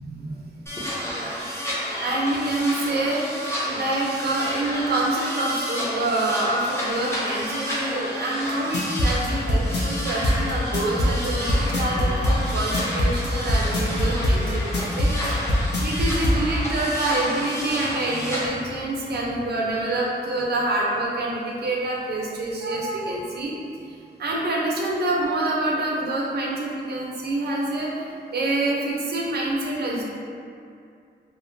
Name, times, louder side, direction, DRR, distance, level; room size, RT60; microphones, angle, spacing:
voice 1, 0.2-0.5 1.1-1.5 2.0-3.3 3.7-15.1 15.4-15.5 15.8-23.5 24.2-28.1 28.3-30.0, right 2 dB, 65° right, -3 dB, 0.5 m, -26 dB
sound 1, 0.7-18.5, equal, 15° left, 0.6 m, -31 dB
sound 2, 8.5-16.4, left 1 dB, 70° left, 0.5 m, -22 dB
2.8 x 2.1 x 2.5 m, 2.3 s
wide cardioid pair, 80°, 18 cm